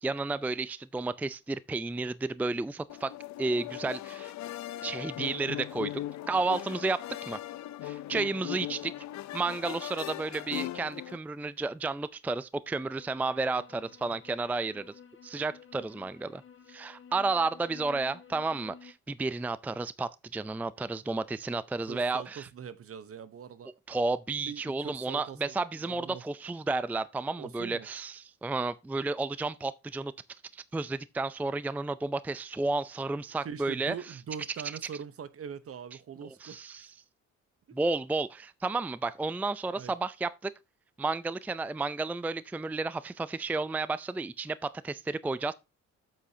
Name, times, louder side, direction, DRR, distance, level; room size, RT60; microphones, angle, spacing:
voice 1, 0.0-3.1 3.4-4.3 4.8-5.9 6.3-7.4 7.8-8.9 9.3-14.9 15.2-16.4 16.7-22.5 23.9-30.1 30.5-33.9 36.2-36.9 37.7-40.5 41.0-45.5, right 3 dB, 5° right, 0.4 m, -32 dB
sound 1, 2.9-11.2, left 13 dB, 65° left, 0.6 m, -39 dB
sound 2, 12.8-18.9, left 7 dB, 40° left, 1.6 m, -53 dB
voice 2, 13.8-14.1 21.8-23.7 24.5-26.2 27.4-27.9 33.4-36.6 37.7-37.8 39.7-39.9, right 7 dB, 50° right, 1.0 m, -42 dB
8.2 x 7.7 x 2.8 m
cardioid pair, 90°, 30 cm